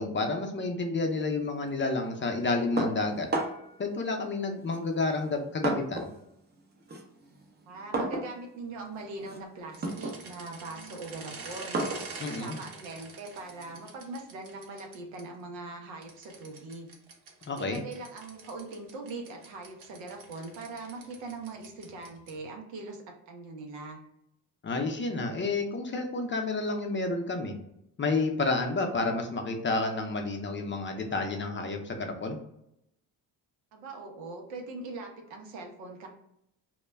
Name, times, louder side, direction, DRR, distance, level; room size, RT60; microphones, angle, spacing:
voice 1, 0.0-3.3 3.8-6.1 12.2-12.6 17.5-17.8 24.6-27.5 28.0-32.4, left 3 dB, 25° left, 3 dB, 0.4 m, -30 dB
sound 1, 2.8-3.8 4.7-6.2 6.5-13.8, right 2 dB, 25° right, 0.5 m, -35 dB
voice 2, 7.7-11.8 12.3-16.9 17.6-24.0 33.7-36.1, right 3 dB, 90° right, 2 dB, 0.7 m, -41 dB
sound 2, 9.7-15.2 16.0-22.5, right 4 dB, 55° right, 0.8 m, -46 dB
2.2 x 2.0 x 3.3 m, 0.77 s
supercardioid pair, 60°, 45 cm